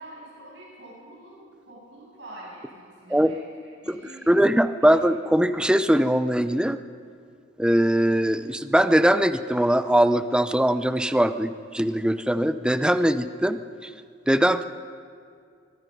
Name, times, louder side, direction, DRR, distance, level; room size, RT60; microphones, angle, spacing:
voice 1, 0.0-4.4 4.8-5.0, right 1 dB, 70° right, -5 dB, 7.6 m, -46 dB
voice 2, 4.3-6.8 7.6-13.9 14.3-14.6, equal, 5° right, 11 dB, 0.6 m, -21 dB
23.5 x 22.5 x 5.4 m, 2.2 s
head